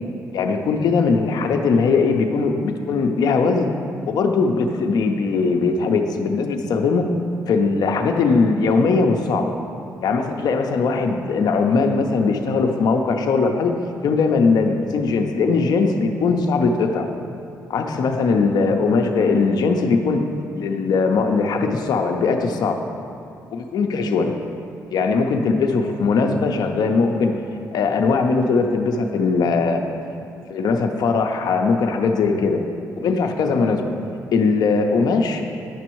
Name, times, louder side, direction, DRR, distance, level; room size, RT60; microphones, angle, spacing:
voice 1, 0.3-3.7 4.1-7.1 7.5-9.5 10.0-13.7 14.0-17.1 17.7-20.2 20.5-22.8 23.5-24.4 24.9-27.3 27.7-29.9 30.5-32.6 33.0-33.9 34.3-35.4, left 4 dB, 65° left, 4 dB, 0.5 m, -20 dB
9.2 x 6.0 x 3.0 m, 2.5 s
supercardioid pair, 60°, 7 cm